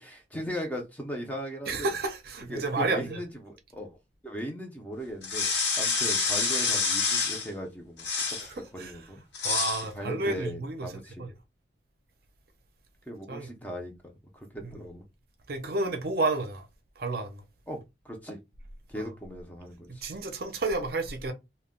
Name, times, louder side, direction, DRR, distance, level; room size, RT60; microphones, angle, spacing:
voice 1, 0.0-1.9 2.5-4.0 4.2-8.1 8.7-9.2 9.9-11.2 13.1-15.0 17.7-18.4 18.9-20.0, equal, 10° left, 0.5 m, -38 dB
voice 2, 1.7-3.2 8.4-8.9 9.4-10.9 11.2-11.3 13.3-13.5 14.6-14.8 15.5-16.7 17.0-17.4 19.0-19.1 19.9-21.3, right 3 dB, 55° right, 0.6 m, -31 dB
sound 1, 5.2-7.5 8.0-8.5 9.3-9.8, left 4 dB, 75° left, 1.0 m, -27 dB
2.2 x 2.1 x 3.5 m
head